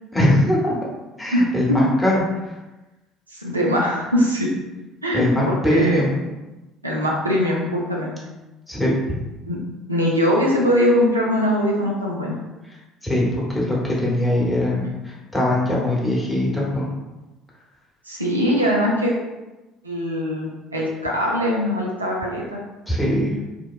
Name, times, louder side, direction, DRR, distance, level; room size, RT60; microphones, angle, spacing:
voice 1, 0.1-0.7 1.2-2.2 5.1-6.1 8.7-9.2 13.0-16.9 22.9-23.3, left 1 dB, 10° left, -5 dB, 0.9 m, -21 dB
voice 2, 3.3-4.5 5.0-6.1 6.8-8.1 9.5-9.6 9.9-12.4 18.1-19.1 19.8-22.6, equal, 85° right, -3 dB, 0.4 m, -21 dB
2.7 x 2.1 x 2.3 m, 1.1 s
figure-of-eight pair, 60°, 0 cm